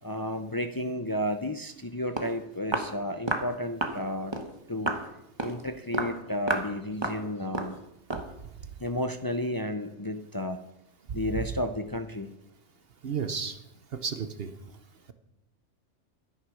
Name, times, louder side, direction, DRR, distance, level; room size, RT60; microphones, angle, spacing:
voice 1, 0.0-4.3 4.7-5.0 5.4-7.8 8.8-10.6 11.1-12.3, left 1 dB, 25° left, 8 dB, 0.5 m, -32 dB
Walk footsteps, 1.8-1.9 2.2-2.3 2.7-2.9 3.3-3.5 3.8-4.0 4.3-4.5 4.9-5.1 5.4-5.6 5.9-6.2 6.5-6.7 7.0-7.2 7.5-7.8 8.1-8.3, right 2 dB, 25° right, 1.2 m, -30 dB
voice 2, 11.1-11.4 13.0-13.6 13.9-14.5, right 6 dB, 55° right, 10 dB, 1.0 m, -32 dB
12.5 x 9.9 x 6.3 m, 0.87 s
omnidirectional pair, 1.2 m